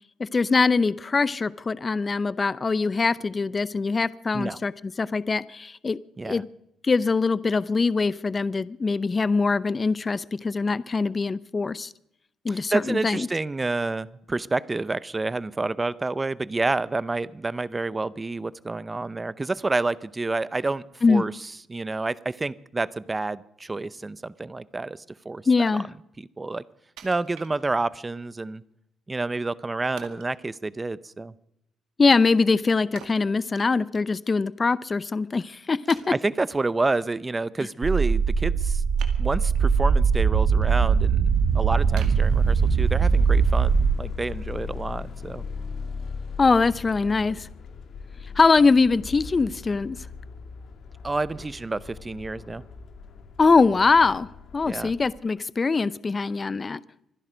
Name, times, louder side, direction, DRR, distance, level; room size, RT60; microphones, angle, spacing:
voice 1, 0.2-6.0 6.2-6.5 6.8-11.9 12.4-13.3 21.0-21.2 25.5-25.9 32.0-36.1 46.4-47.5 48.4-50.0 53.4-54.3 54.5-56.8, left 4 dB, 30° left, 18 dB, 0.6 m, -22 dB
voice 2, 12.5-25.4 25.7-25.8 26.2-26.6 27.0-28.6 29.1-31.3 36.2-38.8 39.2-41.3 41.5-45.4 51.0-52.6 54.7-54.9, right 3 dB, 20° right, 18 dB, 0.7 m, -29 dB
Wood, 27.0-28.1 28.6-28.7 30.0-30.4 33.0-34.1 34.4-34.5 35.2-35.3 35.9-36.6 39.0-39.7 40.2-40.6 41.1-41.2 42.0-43.0 43.5-43.6, right 8 dB, 90° right, 2.0 m, -46 dB
sound 1, 37.8-44.0, right 6 dB, 60° right, 1.2 m, -21 dB
sound 2, 41.3-55.1, left 5 dB, 65° left, 2.2 m, -39 dB
25.0 x 10.5 x 5.2 m, 0.78 s
cardioid pair, 90°, 0 cm